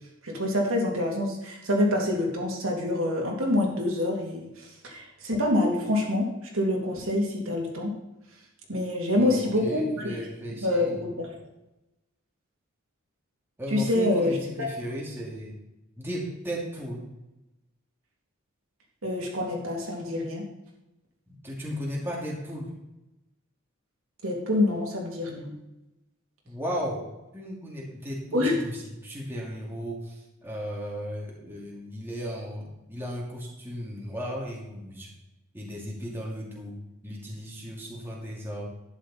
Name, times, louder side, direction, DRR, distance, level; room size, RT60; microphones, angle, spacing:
voice 1, 0.2-6.3 6.5-7.9 8.7-10.1 10.6-11.3 13.7-14.7 19.0-20.4 24.2-25.5 28.3-28.5, left 1 dB, 75° right, -2 dB, 2.7 m, -26 dB
voice 2, 9.2-11.0 13.6-15.5 16.0-17.1 21.3-22.7 26.4-27.0 27.3-35.1 35.5-36.7 37.0-38.7, equal, 10° right, -4 dB, 2.5 m, -35 dB
12.0 x 9.9 x 4.2 m, 0.94 s
head